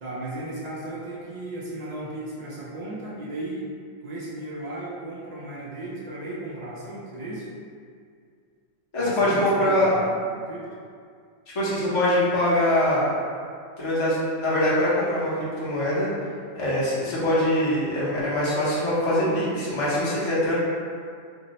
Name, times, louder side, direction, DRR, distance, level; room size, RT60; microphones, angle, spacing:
voice 1, 0.0-3.7 4.0-7.5 9.0-10.7, right 2 dB, 80° right, -7 dB, 0.3 m, -35 dB
voice 2, 8.9-9.9 11.5-13.1 13.8-16.1 16.5-20.5, left 1 dB, 30° left, -9 dB, 0.6 m, -23 dB
2.6 x 2.0 x 3.9 m, 2.2 s
omnidirectional pair, 1.4 m